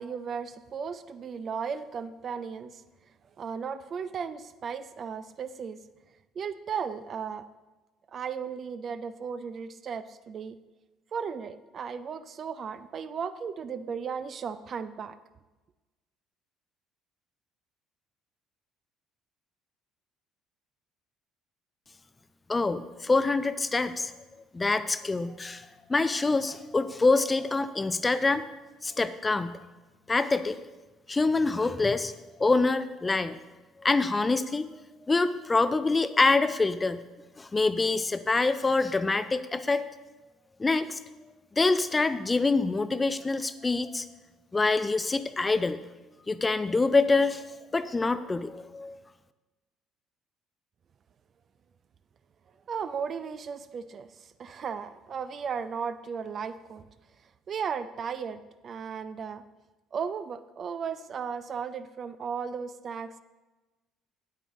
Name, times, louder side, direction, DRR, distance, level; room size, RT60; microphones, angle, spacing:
voice 1, 0.0-2.8 3.4-5.8 6.4-7.4 8.1-10.6 11.1-15.2 52.7-56.8 57.5-59.4 59.9-63.2, right 6 dB, 45° right, 13 dB, 0.4 m, -35 dB
voice 2, 22.5-24.1 24.5-28.5 28.8-29.6 30.1-30.6 31.1-32.1 32.4-33.4 33.8-34.8 35.1-37.0 37.4-39.8 40.6-41.0 41.5-44.1 44.5-45.8 46.3-47.5 47.7-49.0, left 3 dB, 20° left, 13 dB, 0.5 m, -25 dB
9.2 x 8.8 x 3.7 m, 1.2 s
figure-of-eight pair, 55°, 0 cm